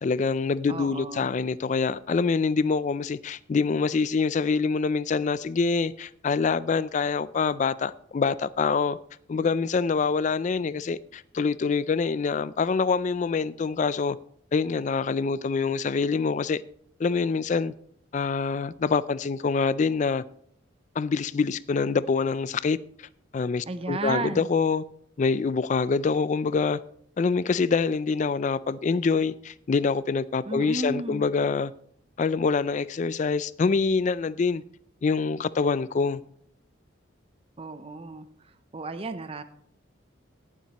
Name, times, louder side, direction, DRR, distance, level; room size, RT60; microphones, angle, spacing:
voice 1, 0.0-9.0 9.3-14.2 14.5-16.6 17.0-17.7 18.1-20.2 21.0-23.1 23.3-24.8 25.2-26.8 27.2-31.7 32.2-34.6 35.0-36.2, left 4 dB, 40° left, 0.3 m, -25 dB
voice 2, 0.7-1.3 23.7-24.5 30.5-31.3 37.6-39.4, right 2 dB, 30° right, 0.6 m, -34 dB
19.5 x 7.3 x 2.9 m
head